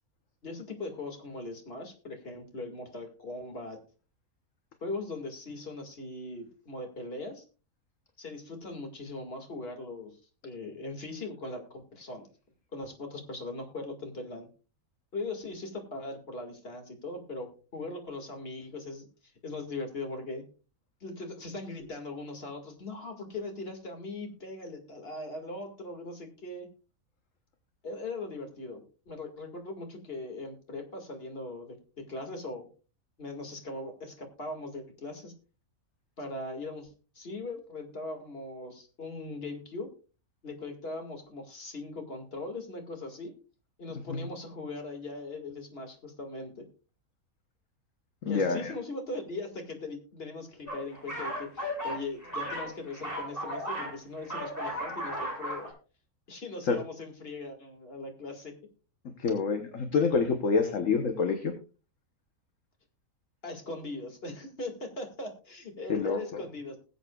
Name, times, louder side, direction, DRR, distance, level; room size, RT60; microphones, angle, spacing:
voice 1, 0.4-3.8 4.8-7.4 8.2-10.2 10.4-12.3 12.7-14.5 15.1-19.1 19.4-20.4 21.0-26.7 27.8-32.7 33.2-35.3 36.2-39.9 40.4-43.4 43.8-46.7 48.2-55.7 56.3-58.5 63.4-66.8, left 2 dB, 40° left, 4 dB, 2.3 m, -40 dB
voice 2, 48.2-48.7 56.6-56.8 59.2-61.5 65.9-66.2, left 4 dB, 60° left, 6 dB, 1.4 m, -27 dB
sound 1, 50.7-54.0 54.2-55.7, equal, 10° left, 6.2 m, -35 dB
20.5 x 8.0 x 2.3 m, 0.35 s
omnidirectional pair, 1.5 m